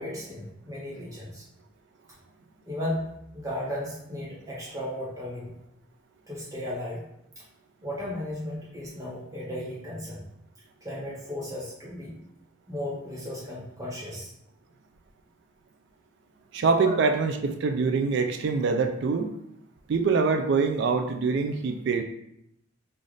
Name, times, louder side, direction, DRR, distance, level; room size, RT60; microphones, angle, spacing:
voice 1, 0.0-1.4 2.7-3.0 3.3-5.5 6.3-7.0 7.4-7.5 7.8-10.2 10.8-12.2 12.7-14.3 16.8-16.9, left 1 dB, 15° right, -6 dB, 1.1 m, -35 dB
voice 2, 16.5-19.3 19.9-22.0, right 4 dB, 55° right, 6 dB, 0.3 m, -24 dB
3.3 x 2.4 x 3.9 m, 0.79 s
head